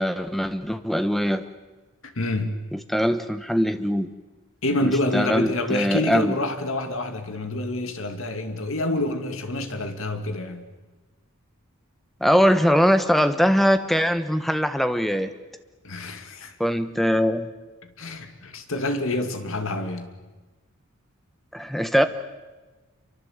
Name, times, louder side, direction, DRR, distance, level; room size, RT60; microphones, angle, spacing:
voice 1, 0.0-1.4 2.7-4.1 4.8-6.3 12.2-15.3 16.6-17.5 21.5-22.0, equal, ahead, 1.1 m, -22 dB
voice 2, 2.0-2.6 4.6-10.7 15.8-16.5 18.0-20.1, left 1 dB, 60° left, 2.4 m, -27 dB
27.0 x 24.0 x 8.1 m
head